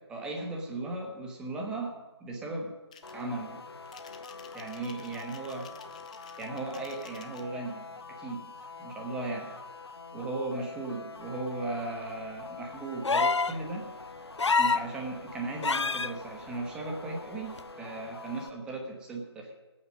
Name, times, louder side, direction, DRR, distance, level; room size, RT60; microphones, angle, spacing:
voice 1, 0.1-2.7 3.1-3.6 4.5-5.7 6.4-8.5 8.8-9.5 10.1-13.9 14.6-19.5, right 2 dB, 5° right, 1 dB, 1.2 m, -37 dB
sound 1, 2.9-3.2 3.8-7.5, left 7 dB, 15° left, 0.4 m, -53 dB
sound 2, 3.0-18.5, left 4 dB, 65° left, 1.3 m, -45 dB
High tritone slides up, 13.0-13.6 14.4-14.9 15.6-16.1 17.6-17.7, left 4 dB, 85° left, 0.4 m, -25 dB
18.0 x 8.6 x 5.2 m, 1.2 s
figure-of-eight pair, 150°, 14 cm